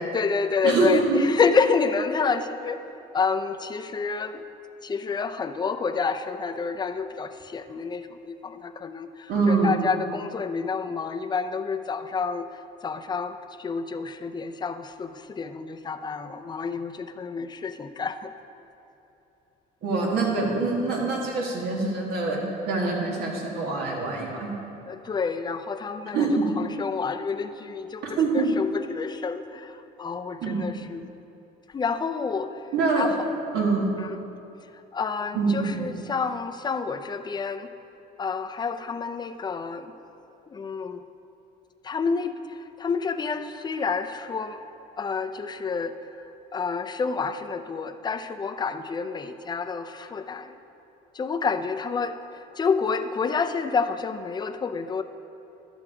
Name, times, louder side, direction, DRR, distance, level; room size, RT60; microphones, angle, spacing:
voice 1, 0.1-2.8 3.1-4.4 4.8-18.3 24.9-26.3 26.6-31.0 31.7-32.6 33.0-33.1 34.0-34.2 34.9-37.7 38.2-39.9 40.5-41.0 41.8-44.6 45.0-46.0 46.5-50.5 51.1-55.0, left 5 dB, 25° left, 8 dB, 0.5 m, -29 dB
voice 2, 0.6-1.2 9.3-9.8 19.8-22.4 22.7-24.5 26.1-26.4 28.2-28.5 30.4-30.6 32.7-33.1 33.5-33.9 35.3-36.0, right 4 dB, 75° right, -1 dB, 2.0 m, -24 dB
11.5 x 7.1 x 4.9 m, 3.0 s
cardioid pair, 110°, 17 cm